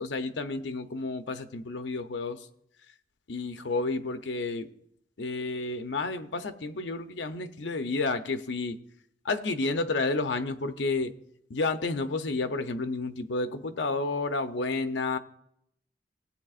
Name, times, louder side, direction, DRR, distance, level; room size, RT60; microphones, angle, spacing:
voice 1, 0.0-2.5 3.3-4.7 5.2-8.8 9.2-11.1 11.5-15.2, left 3 dB, 80° left, 0.7 m, -31 dB
18.0 x 8.1 x 2.4 m
head